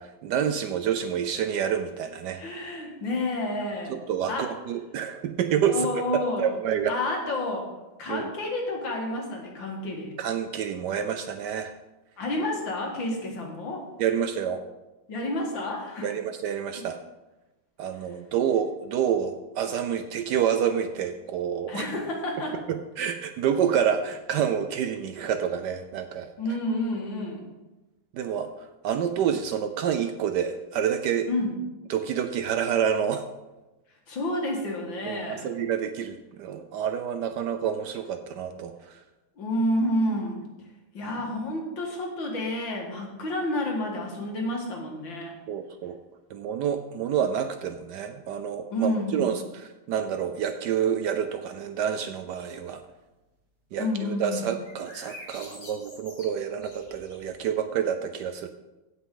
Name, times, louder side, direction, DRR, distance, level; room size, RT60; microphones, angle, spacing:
voice 1, 0.0-2.4 3.9-6.9 8.1-8.3 10.2-11.7 14.0-14.6 16.0-17.0 17.8-21.9 22.7-26.3 28.1-31.3 31.9-33.3 35.0-39.0 45.5-46.0 46.3-52.8 53.7-58.5, right 8 dB, 75° right, 8 dB, 1.0 m, -28 dB
voice 2, 2.3-3.9 4.3-4.5 5.7-6.5 6.9-7.7 8.0-10.2 12.2-13.9 15.1-16.1 16.8-16.9 21.7-22.6 26.4-27.4 31.3-31.5 34.1-35.5 39.4-40.4 40.9-45.3 48.7-49.3 53.8-54.5, left 1 dB, 70° left, 0 dB, 2.5 m, -29 dB
sound 1, 54.6-57.3, left 1 dB, 45° left, 2.8 m, -46 dB
16.0 x 6.1 x 3.8 m, 1.1 s
omnidirectional pair, 2.1 m